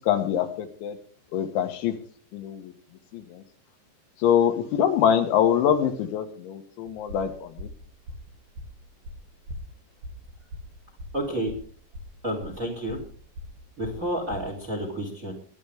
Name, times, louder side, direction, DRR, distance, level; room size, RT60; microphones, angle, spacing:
voice 1, 0.1-1.0 1.3-1.9 2.3-2.7 3.1-3.4 4.2-7.7, left 9 dB, 75° left, 6 dB, 3.5 m, -24 dB
sound 1, 6.8-14.6, left 1 dB, 50° right, 2.4 m, -41 dB
voice 2, 11.1-11.5 12.2-13.0 13.8-15.3, right 1 dB, 20° right, 3 dB, 2.7 m, -30 dB
20.0 x 12.0 x 3.5 m, 0.43 s
omnidirectional pair, 5.6 m